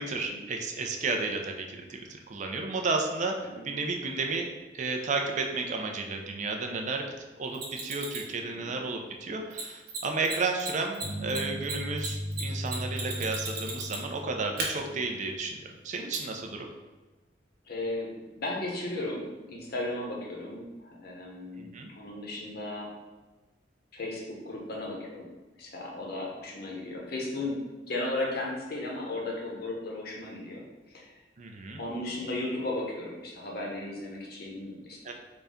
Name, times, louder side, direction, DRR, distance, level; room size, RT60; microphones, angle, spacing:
voice 1, 0.0-2.0 2.3-3.3 3.6-4.5 4.7-7.1 7.4-15.6 15.8-16.6 21.6-21.9 31.4-31.8 35.0-35.1, right 3 dB, 40° right, 2 dB, 0.4 m, -32 dB
Mechanisms, 7.5-8.3 9.5-9.6 9.9-10.0 10.2-10.3 10.6-14.2 14.6-14.7 16.1-16.2, right 4 dB, 60° right, 0.9 m, -35 dB
sound 1, 11.0-15.2, equal, 10° right, 0.8 m, -37 dB
voice 2, 17.6-22.9 23.9-25.3 25.6-31.1 31.8-35.1, left 2 dB, 60° left, -2 dB, 0.8 m, -35 dB
3.9 x 2.2 x 3.5 m, 1.2 s
head